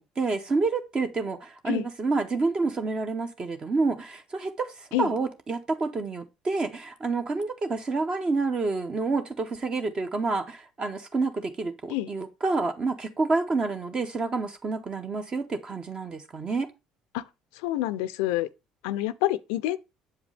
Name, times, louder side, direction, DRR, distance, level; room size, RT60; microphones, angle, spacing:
voice 1, 0.0-16.7, right 3 dB, 35° right, 0.8 m, -28 dB
voice 2, 17.5-18.5 18.8-19.8, left 15 dB, 80° left, 0.3 m, -27 dB
7.3 x 5.1 x 3.3 m
hypercardioid pair, 70°, 2 cm